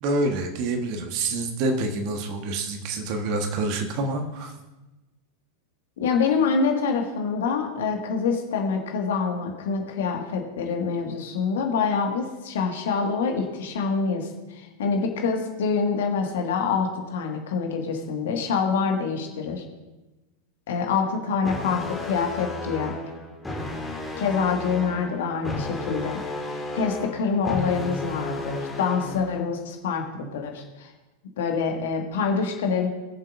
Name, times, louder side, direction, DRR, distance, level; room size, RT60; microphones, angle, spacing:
voice 1, 0.0-4.5, right 2 dB, 45° right, 5 dB, 1.3 m, -27 dB
voice 2, 6.0-19.6 20.7-22.9 24.2-26.2 26.7-30.9 31.4-32.9, left 5 dB, 55° left, 3 dB, 1.8 m, -26 dB
sound 1, 21.4-29.4, left 2 dB, 10° left, 1.9 m, -33 dB
21.5 x 7.4 x 2.6 m, 1.1 s
figure-of-eight pair, 90°, 0 cm